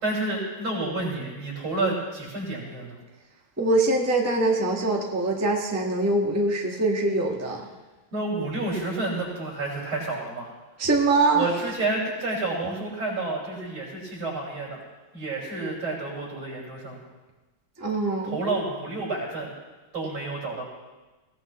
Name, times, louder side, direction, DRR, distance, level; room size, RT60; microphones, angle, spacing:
voice 1, 0.0-3.0 8.1-10.5 11.3-14.8 15.1-17.0 18.2-19.5 19.9-20.6, right 2 dB, 80° right, -4 dB, 6.3 m, -30 dB
voice 2, 3.6-7.6 10.8-11.5 17.8-18.4, right 2 dB, 10° right, -1 dB, 1.4 m, -23 dB
22.0 x 16.5 x 3.2 m, 1.2 s
omnidirectional pair, 2.3 m